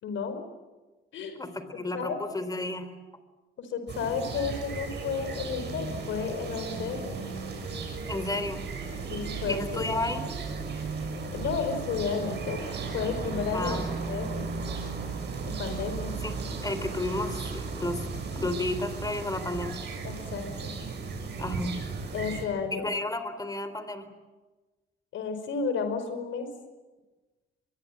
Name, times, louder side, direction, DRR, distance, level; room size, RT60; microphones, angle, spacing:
voice 1, 0.0-0.4 1.1-1.4 1.9-2.2 3.6-7.2 9.1-10.1 11.3-12.6 12.9-14.4 15.5-16.1 20.0-20.7 22.1-22.9 25.1-26.5, left 5 dB, 80° left, 8 dB, 5.1 m, -32 dB
voice 2, 1.4-2.9 8.1-8.7 9.4-10.2 13.5-13.9 16.2-16.3 16.6-18.0 18.4-19.8 21.4-21.8 22.7-24.1, left 2 dB, 20° left, 11 dB, 3.7 m, -32 dB
sound 1, 3.9-22.4, right 4 dB, 60° right, 7.1 m, -35 dB
23.5 x 22.0 x 9.1 m, 1.2 s
cardioid pair, 90°, 20 cm